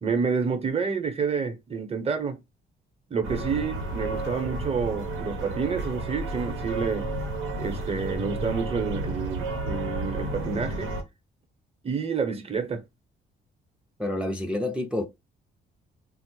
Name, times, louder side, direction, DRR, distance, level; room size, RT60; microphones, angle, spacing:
voice 1, 0.0-2.4 3.1-7.1 7.6-10.9 11.8-12.8, right 5 dB, 30° right, 0.8 m, -29 dB
sound 1, 3.2-11.0, right 2 dB, 90° right, 0.9 m, -32 dB
voice 2, 14.0-15.1, left 1 dB, 5° right, 0.4 m, -28 dB
3.3 x 2.0 x 3.1 m
cardioid pair, 90°, 20 cm